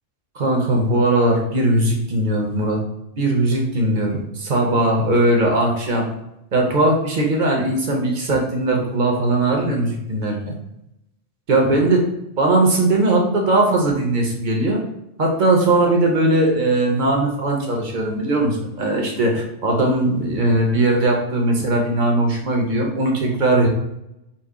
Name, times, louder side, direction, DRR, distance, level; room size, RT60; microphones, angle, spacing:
voice 1, 0.3-2.8 3.2-6.1 6.5-10.5 11.5-12.0 12.4-14.8 15.2-23.7, right 2 dB, 50° right, 0 dB, 0.7 m, -19 dB
4.1 x 2.1 x 3.5 m, 0.85 s
omnidirectional pair, 1.3 m